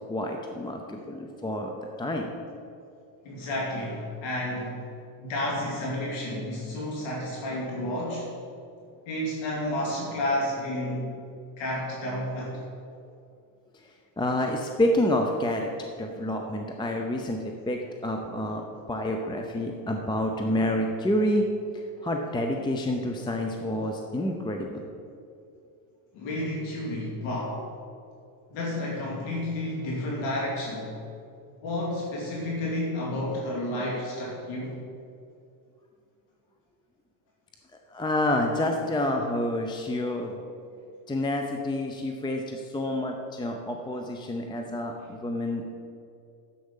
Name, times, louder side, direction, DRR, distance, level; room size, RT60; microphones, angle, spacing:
voice 1, 0.1-1.7 2.0-2.3 14.2-21.4 21.7-24.8 37.9-40.4 41.1-45.6, left 1 dB, 10° left, 3 dB, 0.6 m, -28 dB
voice 2, 3.2-4.8 5.2-8.3 9.1-11.1 11.6-12.5 16.2-16.4 22.0-22.1 26.1-27.6 28.5-31.0 31.6-34.8, left 1 dB, 65° left, -3 dB, 2.5 m, -31 dB
10.5 x 7.8 x 5.5 m, 2.5 s
supercardioid pair, 120°, 49 cm